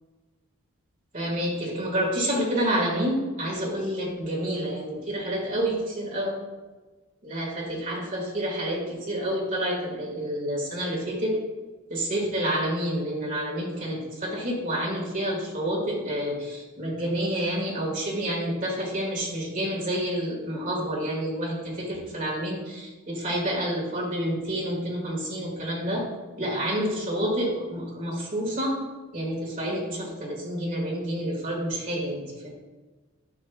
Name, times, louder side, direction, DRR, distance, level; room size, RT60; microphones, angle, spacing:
voice 1, 1.1-6.4 7.2-11.4 11.9-26.1 26.4-28.8 29.1-32.5, equal, 40° right, -3 dB, 2.0 m, -29 dB
10.5 x 5.1 x 2.3 m, 1.2 s
head